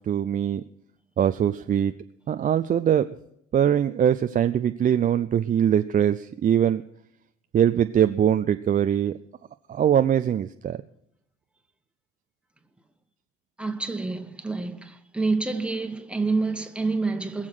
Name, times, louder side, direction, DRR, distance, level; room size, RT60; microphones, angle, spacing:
voice 1, 0.1-0.6 1.2-1.9 2.3-3.1 3.5-6.8 7.5-9.1 9.7-10.8, right 9 dB, 25° right, 0.5 m, -22 dB
voice 2, 13.6-17.5, right 3 dB, 5° right, 1.4 m, -28 dB
21.0 x 7.3 x 6.2 m
figure-of-eight pair, 60°, 34 cm